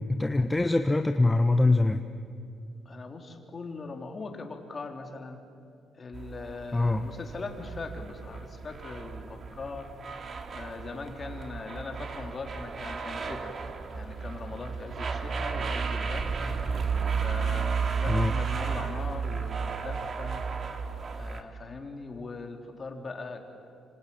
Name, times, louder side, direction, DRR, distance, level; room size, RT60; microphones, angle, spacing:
voice 1, 0.0-2.0 6.7-7.1 18.1-18.4, left 2 dB, 15° left, 7 dB, 1.1 m, -24 dB
voice 2, 2.9-5.4 5.9-9.9 10.5-13.5 13.9-16.4 17.2-20.4 21.2-23.4, left 3 dB, 35° left, 4 dB, 3.7 m, -40 dB
sound 1, 6.1-21.4, right 5 dB, 50° right, 2.4 m, -33 dB
26.5 x 26.0 x 8.6 m, 2.4 s
cardioid pair, 90°, 0 cm